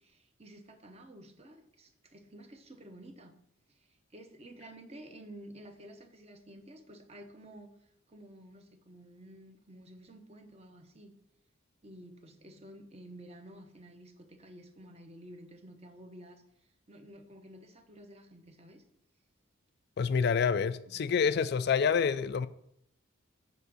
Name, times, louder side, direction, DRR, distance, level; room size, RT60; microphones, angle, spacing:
voice 1, 0.0-3.4 3.7-11.1 11.8-16.4 16.9-18.8 20.0-20.3 20.9-21.3, right 1 dB, 30° right, 0.9 m, -52 dB
voice 2, 20.0-22.5, left 6 dB, 50° left, 0.3 m, -27 dB
8.2 x 4.6 x 6.2 m
head